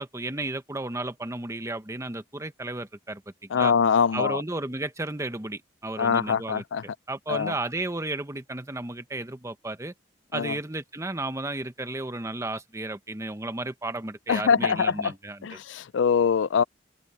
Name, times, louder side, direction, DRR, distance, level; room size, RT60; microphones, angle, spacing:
voice 1, 0.0-3.7 4.1-6.6 7.1-9.9 10.3-15.6, right 2 dB, 15° right, 1.0 m, -33 dB
voice 2, 3.5-4.4 6.0-6.8 7.3-7.5 10.3-10.6 14.3-15.1 15.4-16.6, left 6 dB, 85° left, 0.4 m, -23 dB
head